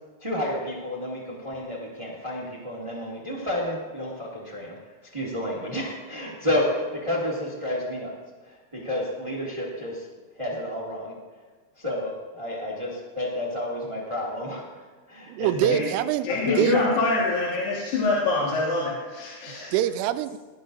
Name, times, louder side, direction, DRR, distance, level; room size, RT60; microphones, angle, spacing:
voice 1, 0.2-4.8 5.1-8.1 8.5-10.0 10.4-11.1 11.8-14.6 15.1-15.7 16.3-16.9, left 1 dB, 35° right, -3 dB, 0.5 m, -30 dB
voice 2, 15.3-16.3 16.6-16.8 19.7-20.4, right 12 dB, 80° right, 11 dB, 2.6 m, -24 dB
voice 3, 16.2-19.7, left 3 dB, 75° left, -5 dB, 3.7 m, -25 dB
19.0 x 12.0 x 2.6 m, 1.4 s
omnidirectional pair, 4.9 m